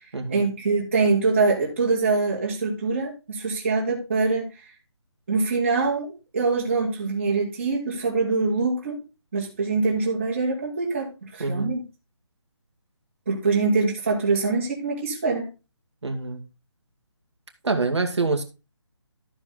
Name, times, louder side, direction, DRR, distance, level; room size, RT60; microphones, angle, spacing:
voice 1, 0.3-4.4 5.3-9.0 9.3-11.8 13.3-15.5, right 4 dB, 25° right, -2 dB, 2.3 m, -24 dB
voice 2, 11.4-11.7 16.0-16.4 17.6-18.4, right 3 dB, 65° right, 4 dB, 2.1 m, -25 dB
13.5 x 5.2 x 4.0 m, 0.30 s
hypercardioid pair, 180°, 16 cm